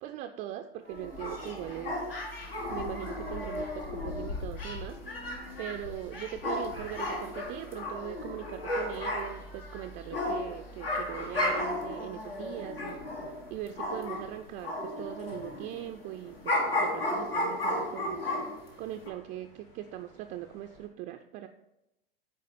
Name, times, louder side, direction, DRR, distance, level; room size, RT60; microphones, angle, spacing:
voice 1, 0.0-2.1 2.7-5.0 5.6-13.0 13.5-18.2 18.8-21.5, right 12 dB, 25° right, 7 dB, 0.4 m, -40 dB
sound 1, 0.9-14.3 14.6-18.7 19.1-19.2, left 1 dB, 75° left, 1.8 m, -34 dB
sound 2, 1.0-20.9, right 1 dB, 60° left, 2.6 m, -53 dB
8.7 x 4.7 x 5.3 m, 0.88 s
figure-of-eight pair, 85°, 29 cm